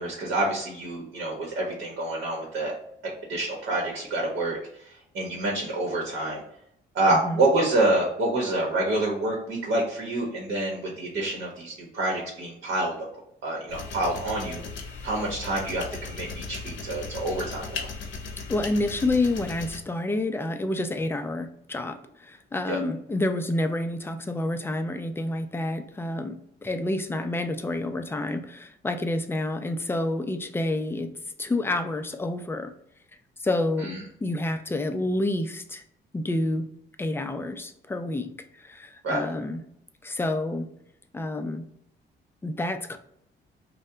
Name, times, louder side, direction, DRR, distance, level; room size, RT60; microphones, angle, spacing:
voice 1, 0.0-2.8 3.3-6.4 6.9-12.9 13.4-14.6 15.0-17.9 22.7-22.8 33.8-34.0 39.0-39.2, right 2 dB, 70° right, -1 dB, 0.9 m, -27 dB
sound 1, 13.7-19.8, left 4 dB, 70° left, 0.6 m, -37 dB
voice 2, 18.5-31.1 31.4-32.7 33.4-35.8 36.1-36.7 37.0-39.6 40.0-40.7 41.1-41.6 42.4-43.0, left 2 dB, 10° left, 8 dB, 0.3 m, -29 dB
2.7 x 2.1 x 3.3 m, 0.72 s
cardioid pair, 90°, 20 cm